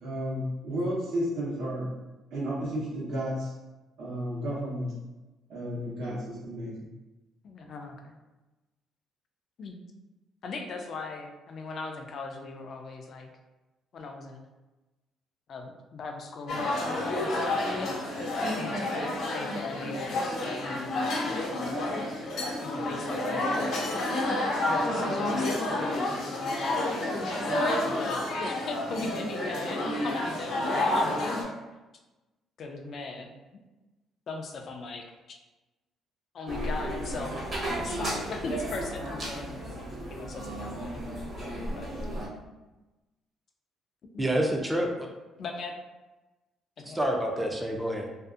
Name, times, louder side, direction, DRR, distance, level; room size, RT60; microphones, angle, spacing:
voice 1, 0.0-1.9 2.3-3.5 4.0-4.9 5.5-6.7, equal, 70° right, -5 dB, 0.9 m, -32 dB
voice 2, 7.4-8.1 9.6-9.8 10.4-13.3 13.9-14.4 15.5-18.1 18.5-22.3 22.6-23.8 24.2-24.4 24.7-26.8 27.5-31.6 32.6-33.3 34.3-35.2 36.3-37.5 37.7-39.5 40.1-41.9 44.1-44.3 45.4-45.7 46.8-47.0, left 3 dB, 50° left, 3 dB, 0.4 m, -39 dB
sound 1, 16.5-31.4, left 1 dB, 75° left, 0.7 m, -29 dB
sound 2, 36.5-42.3, right 1 dB, 40° right, 0.9 m, -34 dB
voice 3, 44.2-45.1 46.8-48.1, right 1 dB, 15° right, 1 dB, 0.4 m, -28 dB
2.6 x 2.4 x 2.4 m, 1.1 s
cardioid pair, 100°, 0 cm